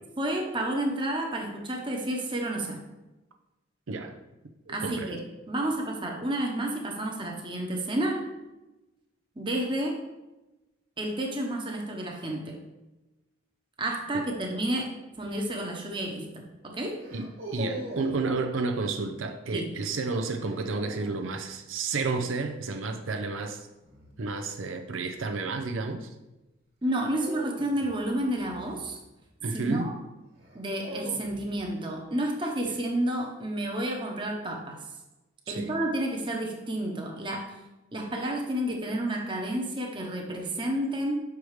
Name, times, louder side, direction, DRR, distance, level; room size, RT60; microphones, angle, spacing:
voice 1, 0.2-2.8 4.7-8.2 9.4-10.0 11.0-12.6 13.8-17.0 19.5-19.7 26.8-29.0 29.5-29.9 30.5-34.8 35.5-37.5 37.9-41.2, right 1 dB, 25° right, 0 dB, 1.0 m, -30 dB
voice 2, 3.9-4.2 4.7-5.2 17.1-23.7 24.2-26.1 29.4-29.9 32.7-32.8 35.5-35.7, right 3 dB, 85° right, 5 dB, 0.6 m, -31 dB
sound 1, 15.1-15.5 17.0-18.3 20.4-21.3 23.8-24.2 27.0-29.3 30.4-31.7, right 1 dB, 50° right, 1.8 m, -41 dB
6.3 x 4.8 x 4.9 m, 1.0 s
head